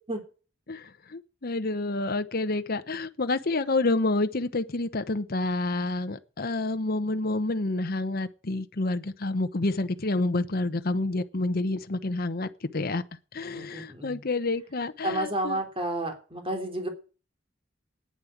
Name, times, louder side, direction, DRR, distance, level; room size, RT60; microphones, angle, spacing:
voice 1, 0.7-13.0 13.3-15.6, left 2 dB, 50° left, 1.0 m, -28 dB
voice 2, 13.5-14.2 15.0-16.9, right 1 dB, 30° right, 3.2 m, -31 dB
9.7 x 9.7 x 8.7 m
head